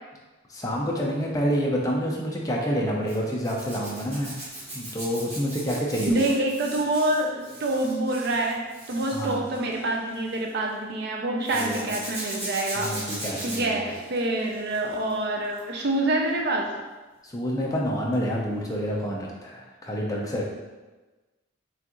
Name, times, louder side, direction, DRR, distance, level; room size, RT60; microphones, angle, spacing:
voice 1, 0.5-4.3 4.7-6.2 9.1-9.4 11.5-11.9 12.8-13.9 17.2-20.4, equal, 20° left, -2 dB, 0.6 m, -28 dB
Zipper (clothing), 3.1-10.5 11.4-15.1 15.4-15.8 18.1-18.3 18.5-18.6, right 1 dB, 30° right, 1.2 m, -38 dB
voice 2, 6.1-12.9 13.4-16.8, right 1 dB, 55° right, 1 dB, 0.5 m, -26 dB
5.9 x 2.5 x 3.0 m, 1.2 s
head